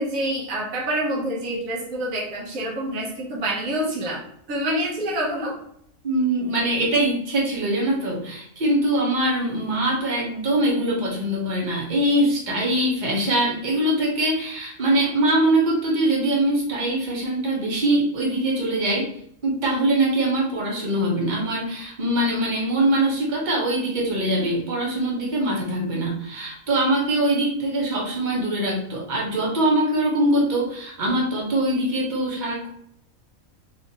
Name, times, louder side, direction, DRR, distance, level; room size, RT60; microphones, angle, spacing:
voice 1, 0.0-4.2 4.5-5.6, right 1 dB, 80° right, -4 dB, 1.3 m, -27 dB
voice 2, 6.0-19.1 19.4-32.7, right 1 dB, 40° right, -4 dB, 0.9 m, -23 dB
3.4 x 2.4 x 2.8 m, 0.70 s
omnidirectional pair, 1.4 m